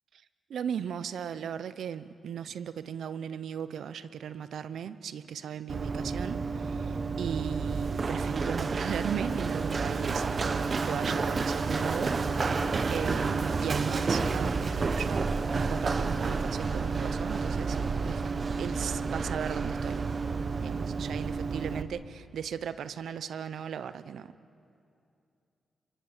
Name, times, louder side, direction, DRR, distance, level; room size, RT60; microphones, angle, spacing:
voice 1, 0.5-10.3 10.8-12.1 12.9-15.3 15.5-17.8 18.0-18.2 18.6-20.0 20.6-24.3, right 8 dB, 80° right, 14 dB, 0.7 m, -37 dB
Run, 5.7-21.8, right 4 dB, 50° right, 1.1 m, -30 dB
26.5 x 23.0 x 7.3 m, 2.6 s
cardioid pair, 65°, 0 cm